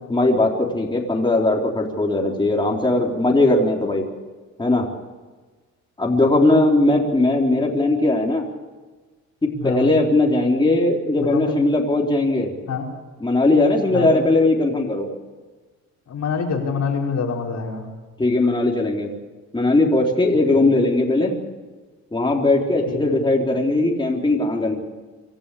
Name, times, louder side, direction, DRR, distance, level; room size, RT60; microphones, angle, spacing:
voice 1, 0.1-4.1 4.6-4.9 6.0-8.4 9.4-12.5 13.2-15.1 18.2-19.1 19.5-21.4 22.1-24.8, left 2 dB, 15° left, -1 dB, 4.0 m, -19 dB
voice 2, 9.6-9.9 11.2-11.6 12.7-12.8 13.9-14.1 16.1-17.8 20.5-20.6 22.9-23.2, left 5 dB, 65° left, -1 dB, 4.8 m, -26 dB
26.0 x 14.0 x 8.6 m, 1.3 s
cardioid pair, 90°, 30 cm